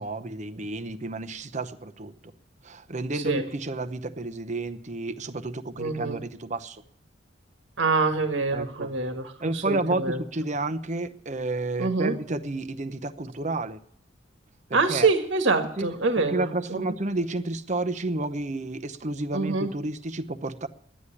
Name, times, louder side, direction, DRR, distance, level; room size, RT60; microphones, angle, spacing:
voice 1, 0.0-2.3 2.6-6.8 8.5-8.9 9.2-13.8 14.7-15.1 15.6-15.9 16.2-20.7, right 2 dB, 40° right, 9 dB, 0.8 m, -31 dB
voice 2, 5.8-6.2 7.8-10.2 11.8-12.1 14.7-16.9 19.3-19.7, right 4 dB, 75° right, 6 dB, 1.6 m, -25 dB
11.0 x 10.0 x 9.8 m, 0.67 s
head